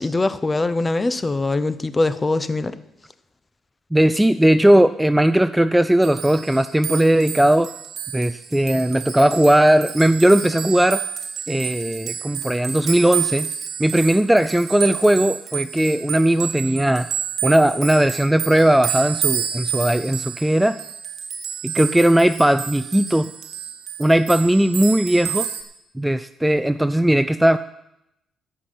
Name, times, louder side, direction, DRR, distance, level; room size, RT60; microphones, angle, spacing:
voice 1, 0.0-2.7, left 2 dB, 25° left, 14 dB, 0.7 m, -22 dB
voice 2, 3.9-7.7 8.1-11.0 11.5-13.5 13.8-17.1 17.4-20.8 21.6-23.3 24.0-25.5 26.0-27.6, right 1 dB, 5° right, 13 dB, 0.4 m, -18 dB
sound 1, 6.0-25.6, right 8 dB, 60° right, 1.6 m, -30 dB
12.5 x 5.7 x 8.3 m, 0.83 s
cardioid pair, 90°, 0 cm